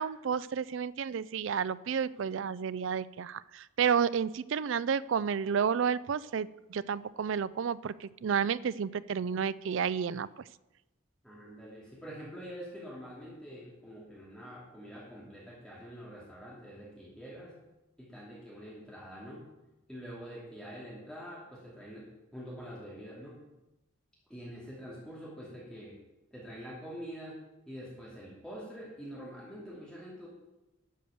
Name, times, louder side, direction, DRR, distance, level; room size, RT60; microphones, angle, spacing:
voice 1, 0.0-10.3, right 7 dB, 65° right, 18 dB, 0.4 m, -31 dB
voice 2, 11.2-17.6 18.0-19.5 19.9-23.4 24.3-26.0 26.3-30.3, equal, 5° left, -6 dB, 2.6 m, -45 dB
12.0 x 6.5 x 7.0 m, 0.98 s
head